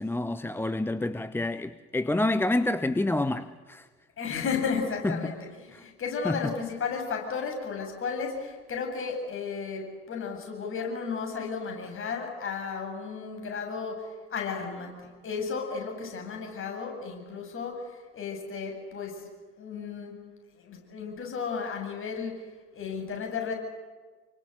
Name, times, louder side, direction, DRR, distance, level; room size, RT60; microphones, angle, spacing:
voice 1, 0.0-3.9 5.0-5.3 5.7-5.8 6.2-6.5, left 2 dB, 5° left, 0.9 m, -28 dB
voice 2, 4.2-19.3 19.6-20.2 20.6-23.5, left 5 dB, 40° left, 7.9 m, -34 dB
28.0 x 24.0 x 8.1 m
figure-of-eight pair, 60°, 33 cm